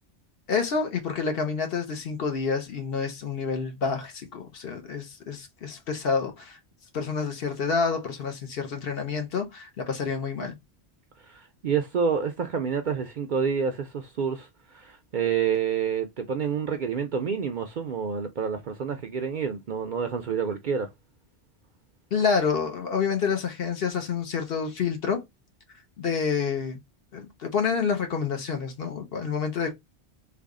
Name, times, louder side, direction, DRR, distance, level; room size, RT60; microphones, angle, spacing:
voice 1, 0.5-6.6 6.9-10.6 22.1-25.2 26.0-26.8 27.1-29.7, left 5 dB, 60° left, 1.0 m, -28 dB
voice 2, 11.3-20.9, right 6 dB, 55° right, 0.5 m, -28 dB
3.4 x 2.3 x 3.6 m
omnidirectional pair, 1.1 m